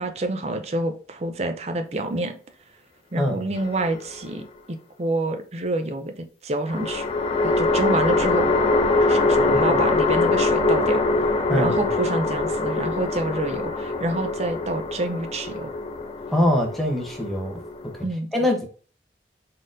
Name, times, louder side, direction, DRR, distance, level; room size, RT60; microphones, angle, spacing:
voice 1, 0.0-2.4 3.1-7.1 7.4-8.5 9.0-11.0 11.5-15.7 18.0-18.3, right 2 dB, 35° right, 0.5 m, -28 dB
voice 2, 3.2-3.5 9.5-9.8 11.5-11.7 16.3-17.9 18.3-18.7, left 1 dB, ahead, 0.8 m, -24 dB
sound 1, 3.5-4.4 6.7-18.0, left 3 dB, 30° left, 0.3 m, -23 dB
4.2 x 3.7 x 2.5 m
head